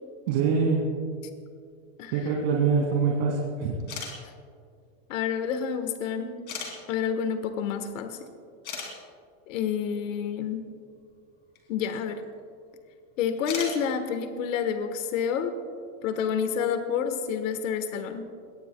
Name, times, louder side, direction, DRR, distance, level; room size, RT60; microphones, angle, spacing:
voice 1, 0.3-0.9 2.1-3.8, right 5 dB, 50° right, -2 dB, 2.4 m, -24 dB
voice 2, 2.0-2.3 3.0-3.2 5.1-6.4 6.9-8.2 9.5-10.7 11.7-12.2 13.2-15.5 16.0-18.3, left 7 dB, 70° left, 7 dB, 1.4 m, -29 dB
sound 1, 3.8-4.1 5.2-5.3 6.5-6.7 8.1-8.2 8.6-8.9 11.6-11.7 13.4-13.8, left 5 dB, 25° left, 2.7 m, -35 dB
22.5 x 19.0 x 2.2 m, 2.2 s
supercardioid pair, 175°, 41 cm